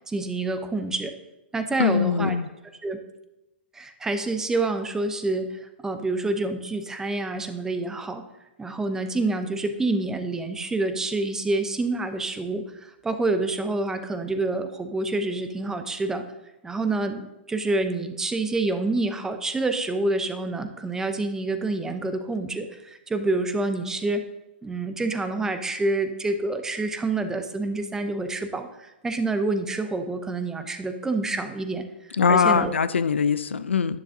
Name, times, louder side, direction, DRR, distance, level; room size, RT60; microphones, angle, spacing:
voice 1, 0.1-1.1 1.5-2.4 2.8-3.0 3.7-8.2 8.6-16.2 16.6-24.3 24.6-32.7, right 2 dB, 10° right, 8 dB, 0.7 m, -27 dB
voice 2, 1.8-2.5 32.1-34.0, left 6 dB, 85° left, 15 dB, 0.5 m, -22 dB
10.5 x 9.9 x 2.7 m, 0.98 s
hypercardioid pair, 130°, 6 cm